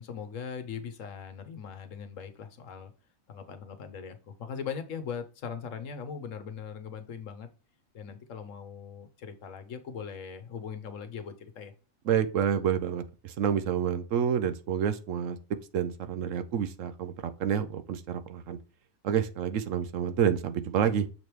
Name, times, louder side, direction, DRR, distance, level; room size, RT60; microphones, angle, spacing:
voice 1, 0.0-2.9 3.3-7.5 7.9-11.7, left 6 dB, 70° left, 1.2 m, -40 dB
voice 2, 12.1-15.4 15.7-17.1 17.4-18.6 19.0-21.1, right 8 dB, 70° right, 1.0 m, -28 dB
6.6 x 3.4 x 4.5 m
omnidirectional pair, 1.4 m